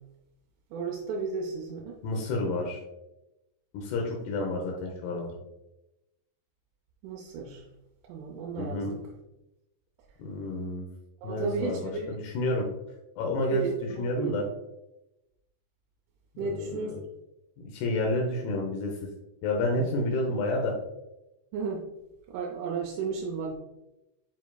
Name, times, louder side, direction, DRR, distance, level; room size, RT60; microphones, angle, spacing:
voice 1, 0.7-2.0 7.0-7.6 8.1-9.0 11.2-12.2 13.5-14.4 16.4-16.9 19.7-19.8 21.5-21.8 22.3-23.5, right 4 dB, 80° right, -1 dB, 3.1 m, -33 dB
voice 2, 2.0-2.8 3.7-5.3 8.6-8.9 10.2-10.9 11.2-12.7 13.2-14.5 16.4-17.0 17.6-19.0 19.4-20.7, left 2 dB, 85° left, 0 dB, 2.3 m, -30 dB
9.4 x 4.5 x 2.3 m, 0.93 s
omnidirectional pair, 5.9 m